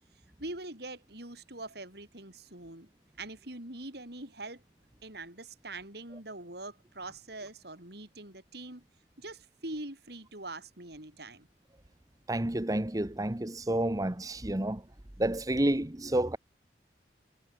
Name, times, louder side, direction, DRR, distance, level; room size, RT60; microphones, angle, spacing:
voice 1, 0.4-2.9 3.2-4.6 5.0-8.8 9.2-11.5, right 2 dB, 60° right, 5.9 m, -43 dB
voice 2, 12.3-14.8 15.2-16.4, right 1 dB, 20° right, 0.9 m, -29 dB
head